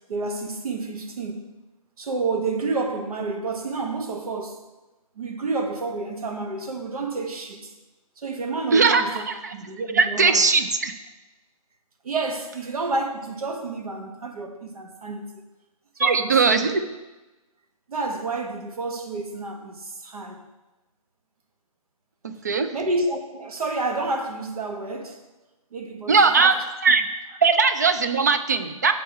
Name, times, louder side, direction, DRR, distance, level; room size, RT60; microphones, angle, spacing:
voice 1, 0.1-1.5 2.0-4.6 5.2-7.7 8.2-10.5 12.0-15.3 16.0-16.7 17.9-20.4 22.7-25.2 25.7-26.6, right 3 dB, 75° right, 1.3 m, -29 dB
voice 2, 8.7-9.5 9.9-10.9 16.0-16.8 22.2-22.7 26.1-26.5 26.8-27.1 27.4-28.9, right 4 dB, 30° right, 0.3 m, -19 dB
6.9 x 4.7 x 5.5 m
hypercardioid pair, 175°, 19 cm